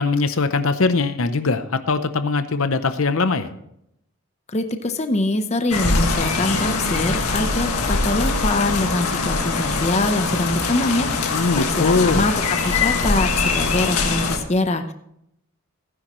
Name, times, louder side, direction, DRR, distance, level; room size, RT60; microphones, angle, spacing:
voice 1, 0.0-3.5 11.3-12.3, left 3 dB, 70° left, 10 dB, 0.7 m, -21 dB
voice 2, 4.5-14.9, left 2 dB, 30° left, 7 dB, 0.8 m, -24 dB
sound 1, 5.7-14.4, left 3 dB, 90° left, 1.8 m, -22 dB
16.0 x 9.9 x 3.1 m, 0.75 s
head